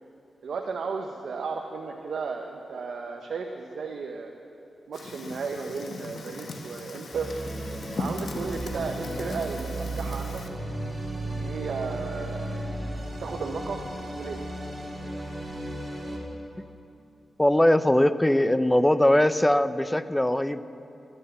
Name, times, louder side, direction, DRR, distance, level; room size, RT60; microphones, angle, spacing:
voice 1, 0.4-4.3 4.9-7.3 8.0-10.4 11.2-12.6 13.2-13.8 14.1-14.4, right 5 dB, 75° right, 2 dB, 0.8 m, -34 dB
Fire, 4.9-10.5, left 2 dB, 65° left, 1.2 m, -38 dB
sound 1, 7.1-16.2, right 1 dB, 25° right, 3.4 m, -35 dB
voice 2, 17.4-20.6, left 1 dB, 10° left, 13 dB, 0.5 m, -21 dB
12.5 x 10.0 x 7.8 m, 2.9 s
cardioid pair, 65°, 0 cm